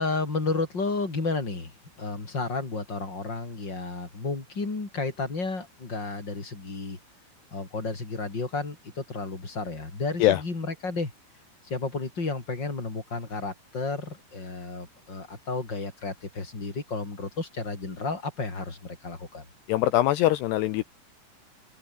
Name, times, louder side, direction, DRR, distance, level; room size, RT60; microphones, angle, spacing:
voice 1, 0.0-1.7 2.0-7.0 7.5-11.1 11.6-19.4, left 3 dB, 20° left, 4.9 m, -32 dB
voice 2, 19.7-20.8, left 15 dB, 85° left, 2.4 m, -22 dB
open air
omnidirectional pair, 5.8 m